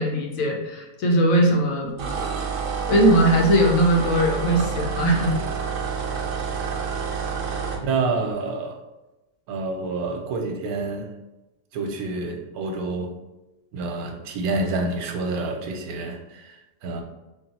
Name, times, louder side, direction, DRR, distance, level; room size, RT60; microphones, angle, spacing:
voice 1, 0.0-1.9 2.9-5.3, right 1 dB, 70° left, 0 dB, 1.2 m, -20 dB
sound 1, 2.0-7.8, right 5 dB, 70° right, 1.0 m, -28 dB
voice 2, 7.8-8.7 9.5-11.1 11.7-13.1 13.7-17.0, right 3 dB, 85° right, 3 dB, 1.2 m, -28 dB
3.8 x 2.4 x 4.1 m, 1.0 s
omnidirectional pair, 1.5 m